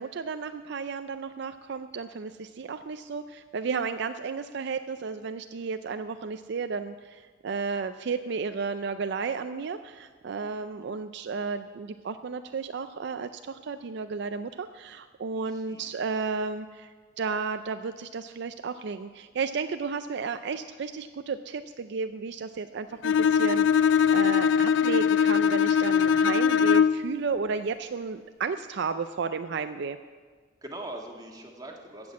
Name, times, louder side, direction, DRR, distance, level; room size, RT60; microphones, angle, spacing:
voice 1, 0.0-16.9 17.2-30.0, right 5 dB, 65° right, 9 dB, 0.4 m, -33 dB
voice 2, 10.4-10.8 15.3-15.9 30.6-32.1, right 1 dB, 20° right, 1 dB, 1.6 m, -42 dB
Bowed string instrument, 23.0-27.1, left 7 dB, 70° left, 0.4 m, -21 dB
15.0 x 6.1 x 8.4 m, 1.5 s
head